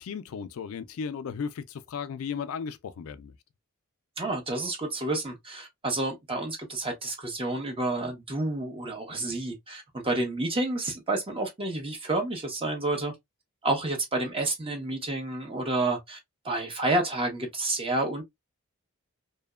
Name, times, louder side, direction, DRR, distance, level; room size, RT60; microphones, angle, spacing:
voice 1, 0.0-3.3, left 6 dB, 70° left, 0.3 m, -35 dB
voice 2, 4.2-13.1 13.6-16.2 16.4-18.2, right 2 dB, 25° right, 0.7 m, -29 dB
2.8 x 2.1 x 2.2 m
head